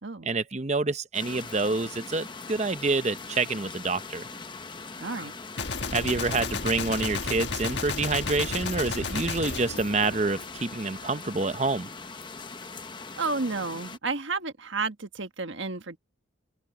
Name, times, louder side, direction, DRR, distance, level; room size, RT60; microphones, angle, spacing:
voice 1, 0.2-4.2 5.9-11.9, right 3 dB, 35° right, 0.8 m, -27 dB
sound 1, 1.1-14.0, left 4 dB, 25° left, 0.9 m, -42 dB
voice 2, 5.0-5.3 13.2-16.0, right 3 dB, 75° right, 1.5 m, -31 dB
Gunshot gunfire, 5.6-10.8, left 4 dB, 65° left, 1.6 m, -33 dB
open air
head